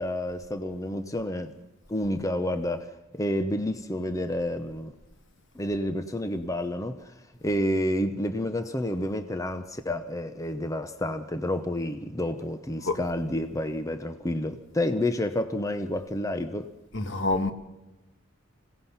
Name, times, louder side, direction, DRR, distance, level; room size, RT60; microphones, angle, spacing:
voice 1, 0.0-1.5 1.9-4.9 5.5-7.1 7.4-16.7, left 1 dB, 15° left, 0.8 m, -29 dB
voice 2, 16.9-17.5, left 2 dB, 60° left, 1.7 m, -26 dB
26.5 x 17.0 x 5.8 m
head